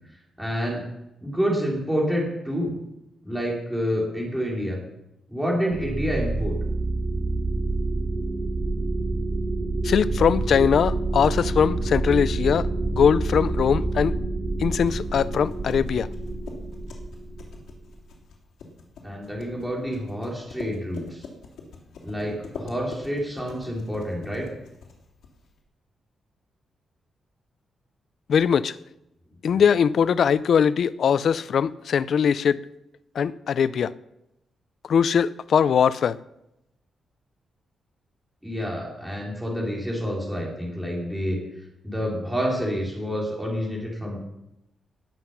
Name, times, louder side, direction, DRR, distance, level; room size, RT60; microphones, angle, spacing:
voice 1, 0.4-0.9 1.2-2.8 3.2-4.8 5.3-6.6 19.0-21.2 22.0-24.5 38.4-41.4 41.8-44.2, equal, 5° right, 4.3 m, -28 dB
sound 1, 5.7-18.0, right 2 dB, 35° right, 2.8 m, -27 dB
voice 2, 9.8-14.1 14.6-16.1 28.3-28.8 29.4-32.6 33.2-33.9 34.9-36.2, left 7 dB, 55° left, 0.5 m, -21 dB
sound 2, 14.6-25.6, left 4 dB, 80° left, 3.4 m, -44 dB
19.5 x 7.8 x 5.9 m
wide cardioid pair, 155°, 0 cm